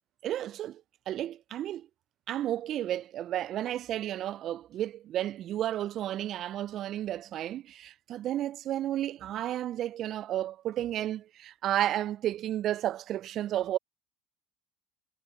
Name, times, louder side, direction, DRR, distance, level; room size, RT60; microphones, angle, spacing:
voice 1, 0.2-1.9 2.3-13.8, right 12 dB, 50° right, 0.4 m, -32 dB
hypercardioid pair, 75°, 0 cm